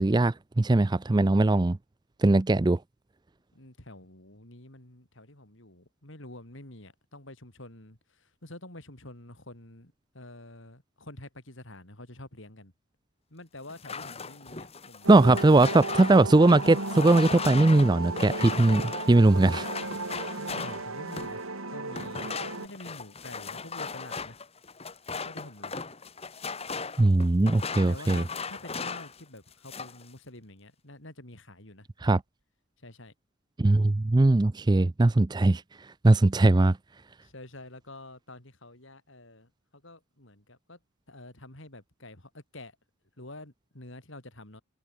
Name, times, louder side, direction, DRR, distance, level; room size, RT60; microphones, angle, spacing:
voice 1, 0.0-1.8 2.2-2.8 15.1-18.8 19.1-19.7 27.0-28.2 32.0-32.2 33.6-35.6 36.0-36.8, right 2 dB, 20° right, 0.4 m, -20 dB
voice 2, 3.5-12.7 13.3-15.9 20.4-24.4 25.2-25.8 27.9-32.2 32.8-33.1 37.2-40.8 41.1-42.7 43.2-44.6, left 1 dB, 60° left, 4.2 m, -48 dB
sound 1, 13.7-21.4 21.9-29.2 29.5-30.1, left 5 dB, 25° left, 1.5 m, -37 dB
sound 2, 15.0-22.7, right 2 dB, 70° right, 3.8 m, -35 dB
head